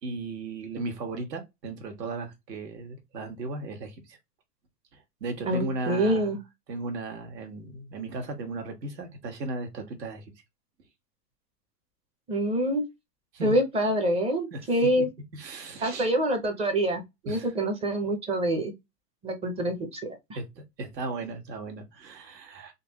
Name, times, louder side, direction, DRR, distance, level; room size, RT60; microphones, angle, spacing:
voice 1, 0.0-4.2 5.2-6.4 6.7-10.2 13.3-13.6 14.5-15.0 15.3-16.1 17.3-17.5 20.3-20.4 20.8-22.8, right 3 dB, 80° right, 1.4 m, -36 dB
voice 2, 5.4-6.4 12.3-12.8 13.4-15.1 15.8-18.7 19.2-20.2, right 1 dB, 15° right, 0.5 m, -26 dB
3.6 x 2.6 x 2.9 m
hypercardioid pair, 125°, 49 cm